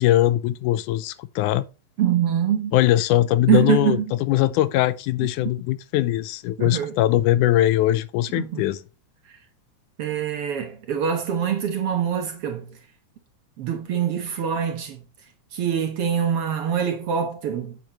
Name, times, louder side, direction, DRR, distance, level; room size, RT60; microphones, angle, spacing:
voice 1, 0.0-1.7 2.7-8.8, left 14 dB, 90° left, 2.1 m, -21 dB
voice 2, 2.0-2.8 3.5-4.1 6.6-7.0 8.3-8.7 10.0-12.7 13.6-15.0 15.5-17.8, right 9 dB, 60° right, 1.7 m, -24 dB
8.8 x 8.6 x 3.0 m
omnidirectional pair, 3.5 m